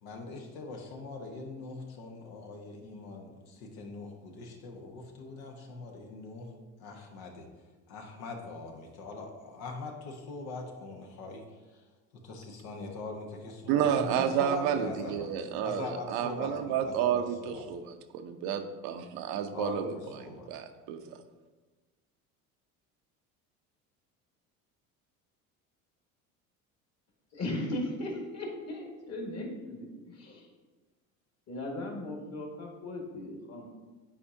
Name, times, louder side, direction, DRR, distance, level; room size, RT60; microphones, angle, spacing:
voice 1, 0.0-6.5 6.8-7.5 7.9-11.4 11.7-11.8 12.2-15.3 15.6-17.6 19.5-19.9 20.2-20.5, left 3 dB, 70° left, 1 dB, 1.2 m, -42 dB
voice 2, 13.7-21.2, right 9 dB, 65° right, 7 dB, 0.7 m, -31 dB
voice 3, 27.3-30.5 31.5-33.7, left 1 dB, 40° left, 1 dB, 1.8 m, -37 dB
8.6 x 4.3 x 2.7 m, 1.3 s
hypercardioid pair, 70°, 41 cm